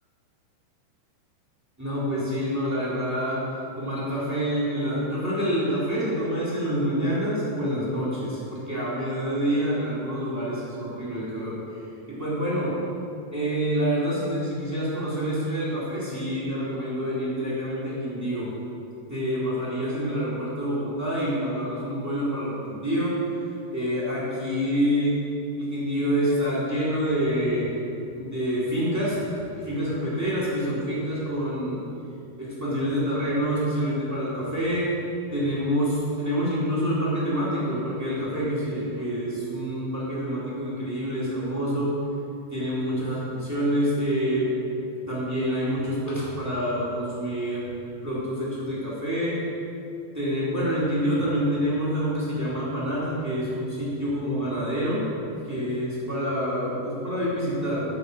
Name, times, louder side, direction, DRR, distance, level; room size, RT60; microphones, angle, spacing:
voice 1, 1.8-3.4 3.8-11.5 12.1-12.8 13.3-18.5 19.1-23.1 23.7-25.2 25.6-27.7 28.1-29.2 29.6-31.8 32.4-34.8 35.3-41.9 42.5-44.5 45.1-47.6 48.0-49.4 50.1-55.0 55.4-57.8, equal, 15° right, -8 dB, 0.5 m, -27 dB
8.3 x 6.9 x 6.3 m, 2.6 s
omnidirectional pair, 5.1 m